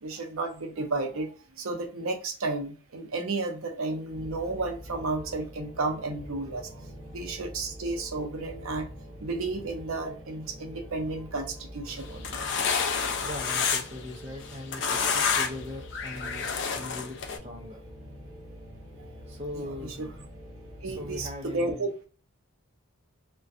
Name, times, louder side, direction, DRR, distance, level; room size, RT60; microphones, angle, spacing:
voice 1, 0.0-6.9 7.1-8.9 9.2-12.4 19.0-19.1 19.5-20.1 20.8-21.9, right 3 dB, 70° right, 4 dB, 0.6 m, -32 dB
sound 1, 4.1-21.3, equal, 15° left, 1.2 m, -45 dB
sound 2, 12.0-14.0 14.4-15.6 15.9-17.4, left 6 dB, 55° left, 0.4 m, -28 dB
voice 2, 13.2-16.4 16.7-17.8 19.3-20.0 20.8-21.9, left 1 dB, 30° right, 0 dB, 0.5 m, -40 dB
2.4 x 2.2 x 2.5 m, 0.38 s
head